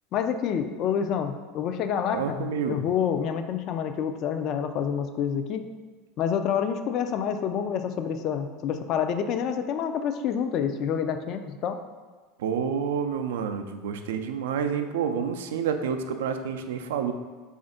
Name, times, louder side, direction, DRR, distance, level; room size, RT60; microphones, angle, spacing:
voice 1, 0.1-5.7 6.2-11.8, left 8 dB, 50° left, 8 dB, 0.3 m, -28 dB
voice 2, 2.1-2.8 12.4-17.1, right 7 dB, 80° right, 7 dB, 0.3 m, -29 dB
3.3 x 2.5 x 3.8 m, 1.4 s
hypercardioid pair, 90°, 0 cm